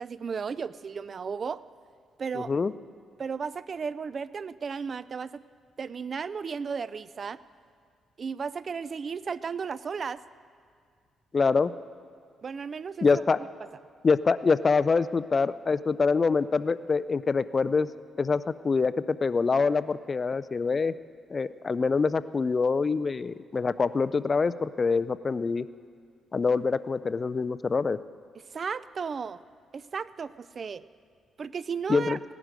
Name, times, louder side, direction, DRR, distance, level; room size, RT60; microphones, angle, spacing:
voice 1, 0.0-1.6 2.2-2.5 3.2-5.4 5.8-7.4 8.2-10.2 12.4-13.5 28.5-29.4 29.7-30.8 31.4-32.2, right 6 dB, 45° right, 17 dB, 0.4 m, -34 dB
voice 2, 2.3-2.7 11.3-11.7 13.0-13.4 14.0-17.9 18.2-20.9 21.3-25.6 26.3-28.0 31.9-32.2, left 4 dB, 35° left, 15 dB, 0.4 m, -25 dB
18.0 x 11.0 x 5.2 m, 2.1 s
cardioid pair, 80°, 0 cm